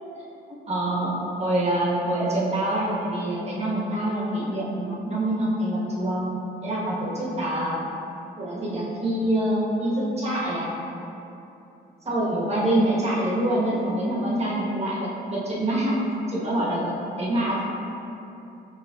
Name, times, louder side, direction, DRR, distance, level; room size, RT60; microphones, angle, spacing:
voice 1, 0.7-1.1 1.4-6.3 6.6-7.8 8.4-10.7 12.0-16.0 16.3-17.6, right 1 dB, 30° right, -6 dB, 1.2 m, -25 dB
6.2 x 3.1 x 2.3 m, 2.9 s
cardioid pair, 90°, 20 cm